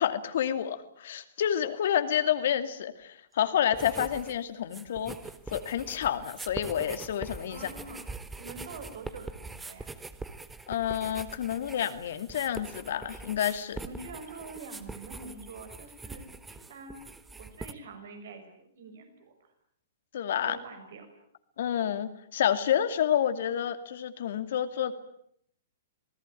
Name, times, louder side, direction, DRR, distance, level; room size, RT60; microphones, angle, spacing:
voice 1, 0.0-5.2 5.5-7.7 10.7-13.8 20.1-20.6 21.6-24.9, left 10 dB, 65° left, 9 dB, 2.5 m, -29 dB
sound 1, 3.7-4.4 4.6-17.7, right 3 dB, 10° right, 1.5 m, -43 dB
voice 2, 7.5-8.1 8.4-9.9 13.8-17.0 17.4-19.5 20.3-21.1, right 3 dB, 65° right, 7 dB, 6.4 m, -45 dB
27.0 x 18.5 x 9.2 m, 0.70 s
hypercardioid pair, 125°, 0 cm